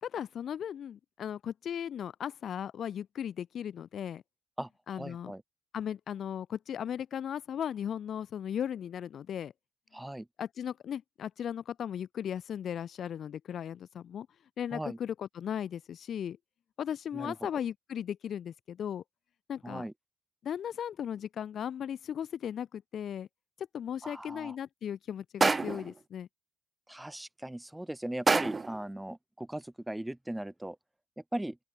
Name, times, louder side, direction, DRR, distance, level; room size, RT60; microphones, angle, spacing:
voice 1, 0.0-4.2 4.9-5.3 5.7-9.5 9.9-10.0 10.4-14.3 14.6-16.4 16.8-19.0 19.5-19.8 20.4-23.3 23.6-26.3, left 9 dB, 60° left, 2.6 m, -37 dB
voice 2, 4.6-5.4 9.9-10.3 14.7-15.0 17.1-17.3 19.6-19.9 24.0-24.5 26.9-30.8 31.2-31.6, right 1 dB, 10° right, 7.2 m, -38 dB
sound 1, 25.4-26.0 28.3-28.8, right 4 dB, 30° right, 1.5 m, -27 dB
open air
cardioid pair, 90°, 0 cm